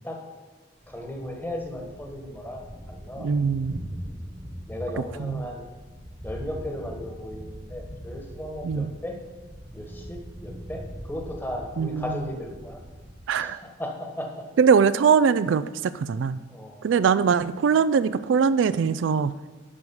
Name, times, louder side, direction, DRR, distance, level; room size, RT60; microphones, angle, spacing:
Thunder, 0.8-13.4, equal, 10° right, 1.2 m, -41 dB
voice 1, 0.9-2.6 2.9-3.5 4.7-5.6 6.2-9.2 9.7-12.8 13.4-14.4 16.5-16.9, left 1 dB, 10° left, 1 dB, 1.4 m, -36 dB
voice 2, 3.2-3.7 5.2-5.4 8.6-8.9 11.8-12.0 13.3-13.6 14.6-16.4 16.8-19.4, right 6 dB, 70° right, 14 dB, 0.3 m, -21 dB
11.0 x 4.8 x 7.0 m, 1.3 s
head